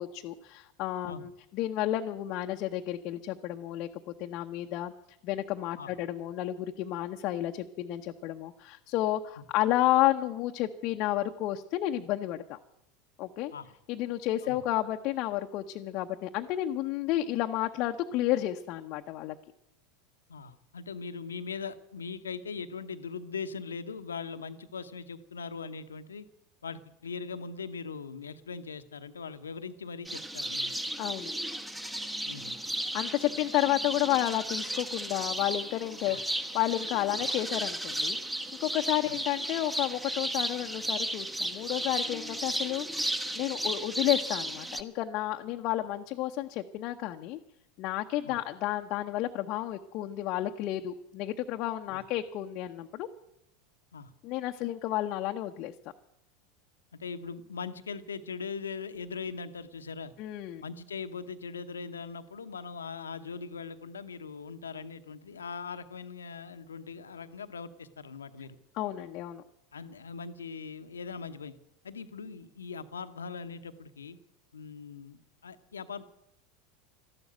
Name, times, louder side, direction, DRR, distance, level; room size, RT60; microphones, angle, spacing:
voice 1, 0.0-3.9 4.2-4.9 5.2-12.6 13.2-13.5 13.9-19.3 31.0-31.3 32.9-38.2 38.6-42.9 43.3-47.4 47.8-53.1 54.2-55.7 60.2-60.6 68.8-69.4, left 14 dB, 50° left, 3 dB, 0.8 m, -31 dB
voice 2, 20.3-26.2 26.6-30.7 32.3-32.6 36.1-36.2 39.0-39.1 48.2-48.4 51.9-52.0 53.9-54.1 57.0-60.1 60.6-68.6 69.7-71.5 71.8-74.2 74.5-76.0, left 5 dB, 80° left, 10 dB, 0.9 m, -40 dB
sound 1, 30.0-44.8, right 1 dB, 10° right, 1.2 m, -34 dB
13.5 x 12.0 x 9.0 m, 0.80 s
figure-of-eight pair, 80°, 0 cm